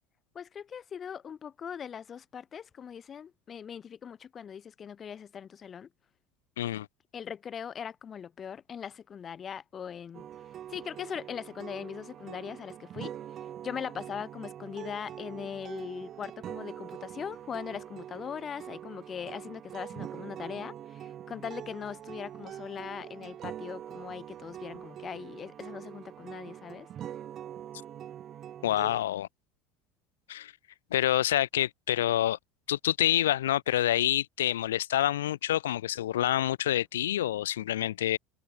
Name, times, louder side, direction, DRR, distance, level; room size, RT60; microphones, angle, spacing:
voice 1, 0.3-5.9 7.1-10.3 10.7-26.9, left 8 dB, 35° left, 5.5 m, -40 dB
voice 2, 6.6-6.9 28.6-29.3 30.3-30.5 30.9-32.4 32.7-38.2, left 12 dB, 80° left, 0.6 m, -27 dB
sound 1, 10.1-29.0, right 10 dB, 45° right, 3.8 m, -44 dB
hypercardioid pair, 75°, 0 cm